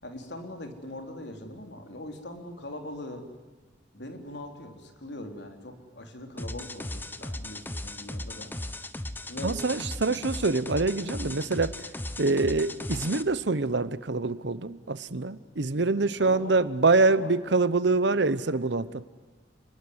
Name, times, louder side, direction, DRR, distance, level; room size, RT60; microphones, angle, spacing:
voice 1, 0.0-3.3 3.9-8.5 9.3-9.6 10.1-10.2 11.1-11.4 16.0-16.6 17.1-17.3 18.0-18.3, left 1 dB, 65° left, 4 dB, 3.9 m, -41 dB
sound 1, 6.4-13.2, left 1 dB, 10° left, 0.9 m, -37 dB
voice 2, 9.4-11.7 12.2-19.0, right 3 dB, 65° right, 15 dB, 0.9 m, -25 dB
29.0 x 21.0 x 9.8 m, 1.3 s
head